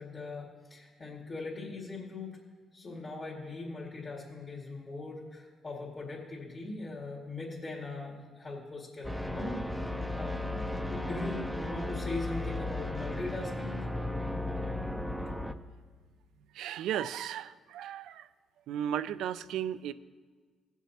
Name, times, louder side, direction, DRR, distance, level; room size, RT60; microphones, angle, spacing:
voice 1, 0.0-2.4 2.7-13.8, left 3 dB, 40° left, -6 dB, 2.2 m, -40 dB
sound 1, 9.0-15.5, left 1 dB, ahead, 0.5 m, -35 dB
voice 2, 16.5-18.3 18.7-19.9, right 10 dB, 85° right, 15 dB, 0.3 m, -35 dB
17.5 x 7.2 x 2.8 m, 1.5 s
cardioid pair, 90°, 0 cm